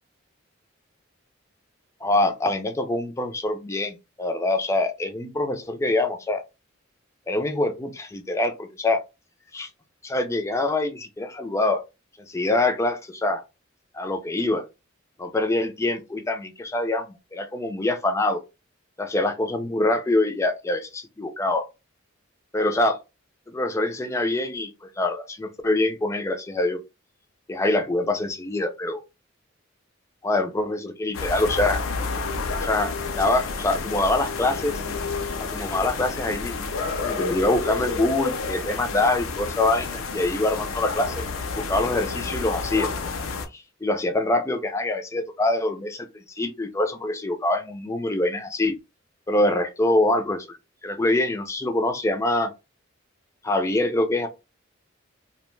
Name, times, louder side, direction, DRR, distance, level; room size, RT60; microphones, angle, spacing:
voice 1, 2.0-6.4 7.3-9.0 9.5-9.7 10.0-11.8 12.3-13.4 13.9-14.6 15.2-18.4 19.0-21.6 22.5-23.0 23.5-26.8 27.5-29.0 30.2-31.8 32.6-34.8 35.4-36.6 37.0-41.2 41.5-42.9 43.5-46.1 46.3-48.8 49.3-50.6 50.8-52.5 53.4-54.3, left 2 dB, 15° left, 0.3 m, -25 dB
sound 1, 31.1-43.5, left 4 dB, 90° left, 0.5 m, -30 dB
2.6 x 2.1 x 3.0 m
head